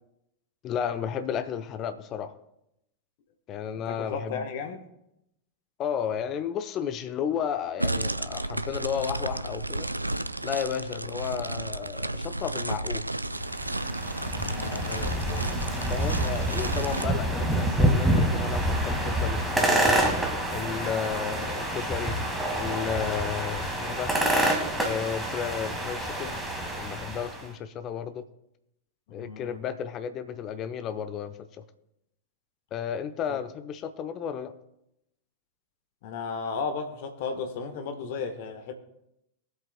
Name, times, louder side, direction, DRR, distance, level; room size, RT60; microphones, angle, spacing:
voice 1, 0.6-2.3 3.5-4.5 5.8-9.9 10.4-13.1 15.9-20.1 20.5-22.2 22.5-24.1 24.8-26.4 26.7-28.2 29.1-31.6 32.7-34.5, left 8 dB, 35° left, 0.7 m, -33 dB
voice 2, 3.9-4.8 14.4-15.5 29.1-29.6 33.3-33.4 36.0-38.7, left 5 dB, 50° left, 1.3 m, -35 dB
sound 1, 7.8-17.1, right 2 dB, 85° right, 0.4 m, -32 dB
sound 2, 13.4-27.4, right 1 dB, 5° right, 1.9 m, -27 dB
23.0 x 8.0 x 2.2 m
figure-of-eight pair, 90°, 0 cm